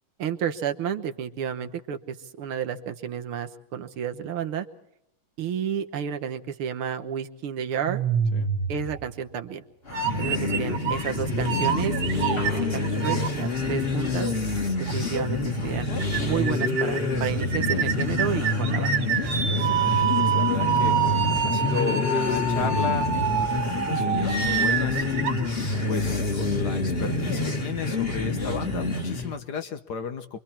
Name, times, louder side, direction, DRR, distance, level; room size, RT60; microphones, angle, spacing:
voice 1, 0.2-4.7 5.4-8.0 8.7-9.6 10.2-14.3 14.8-19.0, right 8 dB, 80° right, 7 dB, 2.0 m, -31 dB
sound 1, 7.9-9.4 9.9-11.1 11.5-13.3 13.8-13.9 14.9-15.0 15.3-15.4 15.6-15.7 16.0-16.2 16.5-17.0 17.4-26.1, right 6 dB, 60° right, 1.9 m, -27 dB
sound 2, 9.9-29.3, left 2 dB, 30° left, 2.2 m, -27 dB
Piano, 12.1-21.1, left 1 dB, 80° left, 8.9 m, -49 dB
voice 2, 19.4-25.3 25.9-30.4, left 6 dB, 55° left, 8 dB, 1.5 m, -34 dB
27.0 x 23.5 x 4.4 m, 0.76 s
omnidirectional pair, 2.3 m